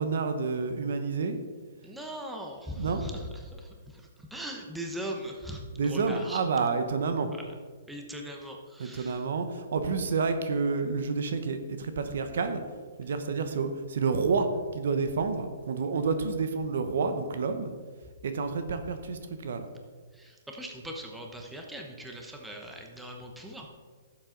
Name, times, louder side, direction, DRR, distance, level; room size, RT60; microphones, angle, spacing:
voice 1, 0.0-1.4 2.8-3.0 5.8-7.3 8.8-12.6 13.0-14.5 14.7-17.7 18.2-19.7, right 4 dB, 70° right, 8 dB, 1.0 m, -29 dB
voice 2, 1.8-6.4 7.9-9.2 20.1-23.7, equal, 5° right, 1 dB, 0.9 m, -40 dB
12.0 x 7.5 x 3.9 m, 1.6 s
hypercardioid pair, 160°, 0 cm